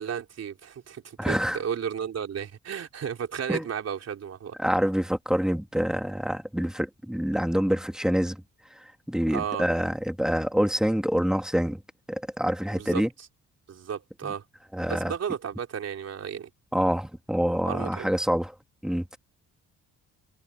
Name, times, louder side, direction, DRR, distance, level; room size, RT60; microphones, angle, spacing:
voice 1, 0.0-4.6 9.3-9.7 12.7-13.0 13.7-14.4 14.9-16.5 17.7-18.1, right 8 dB, 55° right, 3.8 m, -33 dB
voice 2, 1.2-1.6 3.5-3.6 4.6-8.4 9.1-11.8 12.1-13.1 14.2-14.3 14.7-15.1 16.7-18.5 18.8-19.2, equal, ahead, 2.5 m, -26 dB
cardioid pair, 90°, 30 cm